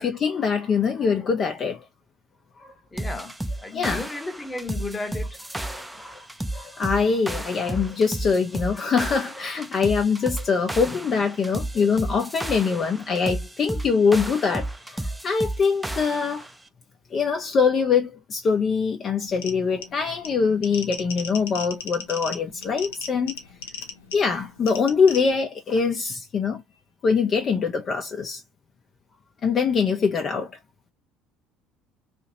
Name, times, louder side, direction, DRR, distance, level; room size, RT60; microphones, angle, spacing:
voice 1, 0.0-1.8 2.6-2.7 3.7-4.0 5.7-6.2 6.5-16.5 17.1-23.3 24.1-26.6 27.0-28.4 29.4-30.5, left 5 dB, 40° left, 0.6 m, -23 dB
voice 2, 2.9-5.4 30.2-30.3, left 3 dB, 15° left, 1.0 m, -34 dB
sound 1, 3.0-16.5, right 1 dB, 5° right, 0.5 m, -33 dB
sound 2, 19.3-25.4, left 6 dB, 75° left, 0.7 m, -37 dB
2.9 x 2.5 x 2.8 m
figure-of-eight pair, 60°, 0 cm